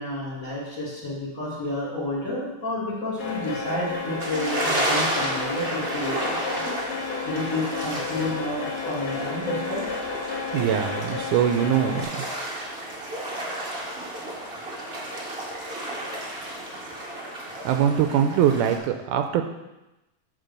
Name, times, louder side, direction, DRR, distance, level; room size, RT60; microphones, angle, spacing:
voice 1, 0.0-6.4 7.3-9.8, left 1 dB, 30° left, -7 dB, 2.3 m, -30 dB
sound 1, 3.2-12.0, left 4 dB, 75° left, 2.7 m, -32 dB
sound 2, 4.2-18.8, right 1 dB, 40° right, 0.8 m, -32 dB
voice 2, 10.5-12.1 17.7-19.5, right 9 dB, 80° right, 7 dB, 2.0 m, -22 dB
9.1 x 4.4 x 6.6 m, 0.99 s
omnidirectional pair, 3.7 m